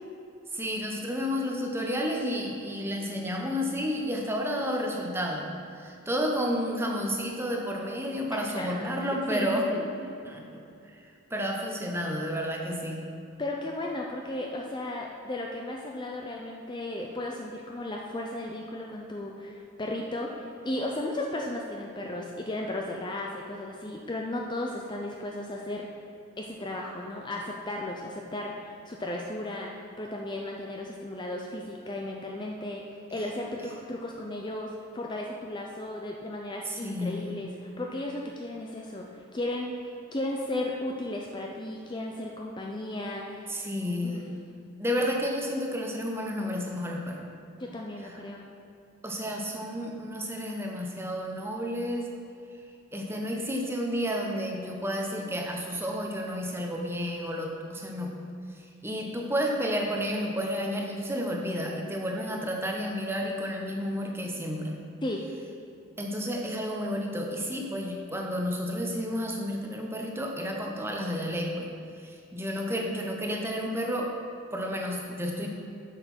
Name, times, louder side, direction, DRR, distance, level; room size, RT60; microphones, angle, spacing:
voice 1, 0.5-5.5 5.8-9.7 10.2-10.6 10.9-11.0 11.3-13.1 36.6-37.4 43.5-44.4 44.8-47.3 49.0-52.1 52.9-58.1 58.8-64.8 66.0-71.7 72.0-74.1 74.5-75.5, equal, 10° right, 0 dB, 0.9 m, -31 dB
voice 2, 8.3-8.9 9.3-10.2 13.4-26.0 26.4-43.5 44.0-44.2 47.6-48.4 65.0-65.2, left 1 dB, 20° left, 0 dB, 0.5 m, -35 dB
8.0 x 6.6 x 5.9 m, 2.6 s
head